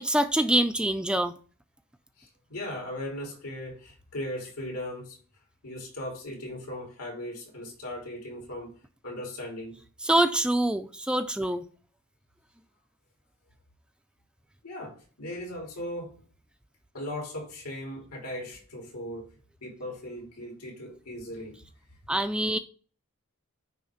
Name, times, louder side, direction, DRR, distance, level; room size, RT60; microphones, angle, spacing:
voice 1, 0.0-1.3 10.0-11.6 22.1-22.6, right 1 dB, 5° right, 0.3 m, -25 dB
voice 2, 2.2-5.2 5.6-8.7 9.0-9.8 14.6-16.2 16.9-19.3 19.6-21.6, left 1 dB, 85° left, 3.4 m, -38 dB
9.3 x 3.5 x 5.0 m
head